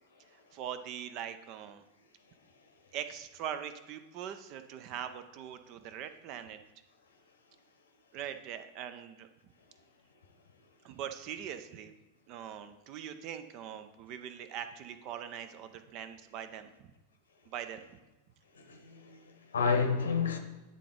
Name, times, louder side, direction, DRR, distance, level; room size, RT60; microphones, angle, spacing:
voice 1, 0.3-1.9 2.9-6.6 8.1-9.3 10.8-11.9 12.3-16.9 17.5-17.9, right 9 dB, 40° right, 0.5 m, -42 dB
voice 2, 18.5-20.4, left 5 dB, 70° left, 0.9 m, -30 dB
10.0 x 3.7 x 3.8 m
figure-of-eight pair, 90°, 0 cm